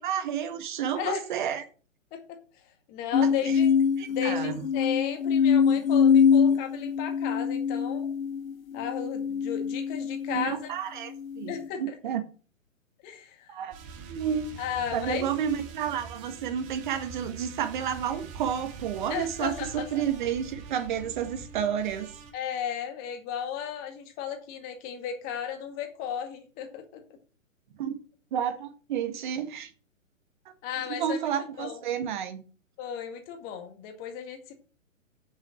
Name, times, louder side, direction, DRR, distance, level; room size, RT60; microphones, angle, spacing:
voice 1, 0.0-1.6 3.2-3.5 4.0-4.6 10.3-12.2 13.5-13.7 14.1-14.5 14.9-22.1 27.8-28.0 28.3-29.7 30.9-32.4, right 8 dB, 35° right, 1.6 m, -31 dB
voice 2, 0.9-1.3 2.1-2.4 2.9-3.7 4.1-8.1 8.7-10.7 11.5-12.0 13.0-13.5 14.6-15.3 19.1-19.9 22.3-27.0 30.6-31.2 31.6-31.8 32.8-34.5, left 9 dB, 20° left, 2.0 m, -34 dB
sound 1, 3.1-10.6 11.2-11.7, left 6 dB, 85° left, 0.5 m, -24 dB
sound 2, 13.7-22.3, right 5 dB, 20° right, 1.2 m, -44 dB
8.8 x 6.4 x 6.3 m
figure-of-eight pair, 125°, 40 cm